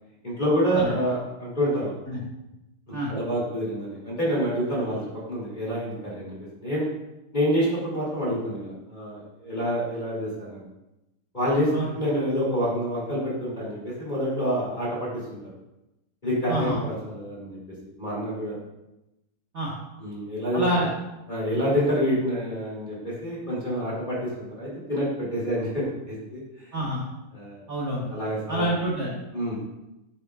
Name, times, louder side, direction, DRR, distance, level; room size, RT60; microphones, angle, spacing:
voice 1, 0.2-1.9 3.1-5.0 5.3-6.9 7.3-10.6 11.3-15.4 16.2-17.6 18.0-18.5 20.0-20.9 21.3-26.7 27.3-27.6 28.1-28.7 29.3-29.6, equal, 20° left, -6 dB, 2.5 m, -27 dB
voice 2, 20.5-20.9 26.7-27.0 27.7-28.1 28.5-29.1, right 1 dB, 40° right, -6 dB, 1.3 m, -27 dB
7.8 x 7.5 x 2.4 m, 0.95 s
omnidirectional pair, 2.3 m